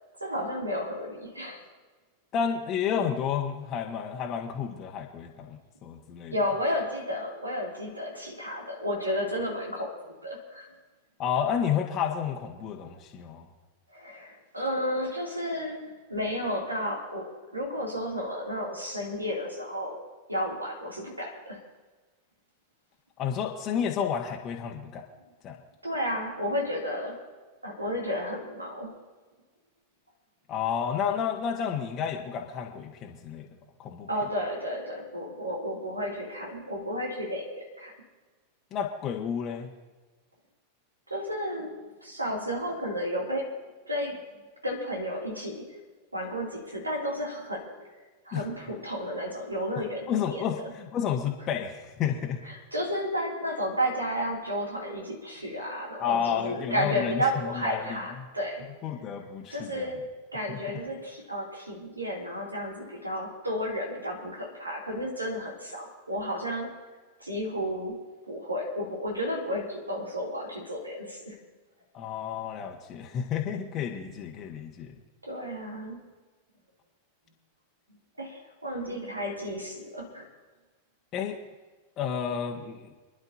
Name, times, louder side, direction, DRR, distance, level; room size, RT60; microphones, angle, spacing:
voice 1, 0.2-1.6 6.3-9.9 10.2-10.7 13.9-20.0 20.3-21.6 25.8-27.2 27.6-29.0 34.1-37.9 41.1-43.5 43.9-44.2 44.6-45.7 46.1-47.7 48.3-50.5 52.4-58.6 59.5-60.0 60.3-66.7 67.2-68.0 68.3-71.4 75.2-76.0 78.2-80.3, equal, 80° right, -1 dB, 2.7 m, -32 dB
voice 2, 2.3-6.3 11.2-13.4 23.2-25.0 25.4-25.6 30.5-33.5 33.8-34.1 38.7-39.7 48.3-48.4 50.1-52.4 56.0-57.2 57.5-58.0 58.8-59.9 60.5-60.6 71.9-74.9 81.1-81.4 82.0-82.9, left 8 dB, 30° left, 1 dB, 1.4 m, -31 dB
28.0 x 10.5 x 2.8 m, 1.3 s
figure-of-eight pair, 90°, 0 cm